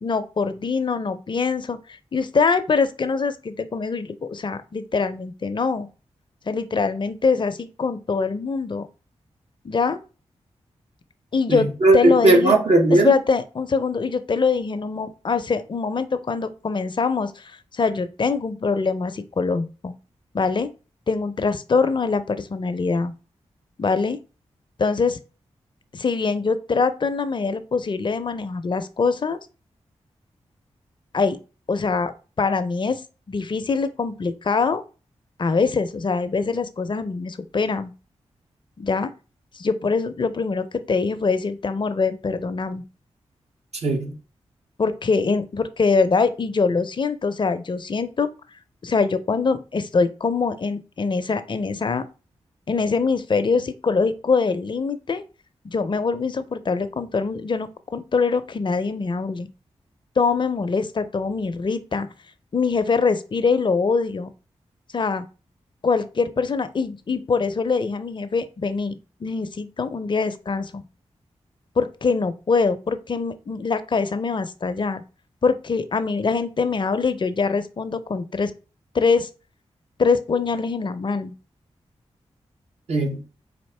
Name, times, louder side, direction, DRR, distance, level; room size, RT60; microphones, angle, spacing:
voice 1, 0.0-5.9 6.5-8.9 9.6-10.0 11.3-11.7 11.9-12.5 13.0-19.9 20.3-20.7 21.1-23.1 23.8-24.2 24.8-25.2 25.9-29.4 31.1-31.4 31.7-32.1 32.4-33.0 33.3-34.8 35.4-37.9 38.8-39.1 39.5-42.8 44.8-48.3 48.8-52.0 52.7-55.2 55.7-59.5 60.2-62.1 62.5-64.3 64.9-65.2 65.8-70.8 71.8-75.0 75.4-78.5 78.9-79.3 80.0-81.3, left 4 dB, 40° left, 0.5 m, -23 dB
voice 2, 11.5-13.2 43.8-44.1 82.9-83.2, right 2 dB, 65° right, 1.0 m, -17 dB
4.3 x 2.5 x 3.3 m
cardioid pair, 40°, 12 cm